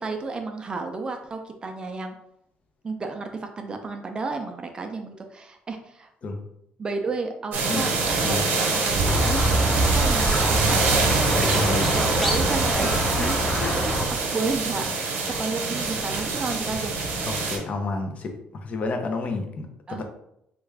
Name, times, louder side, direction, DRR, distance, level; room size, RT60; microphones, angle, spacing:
voice 1, 0.0-2.1 2.8-6.1 6.8-10.9 11.9-12.9 13.2-14.9 15.3-17.0 19.9-20.0, right 3 dB, 30° right, 5 dB, 0.4 m, -32 dB
sound 1, 7.5-17.6, right 4 dB, 70° right, 0.9 m, -25 dB
Squeak, 9.0-14.1, right 1 dB, 5° left, 0.7 m, -25 dB
voice 2, 11.4-12.0 13.2-13.8 17.5-20.0, left 3 dB, 45° left, 5 dB, 0.6 m, -31 dB
3.3 x 2.3 x 3.3 m, 0.78 s
cardioid pair, 115°, 3 cm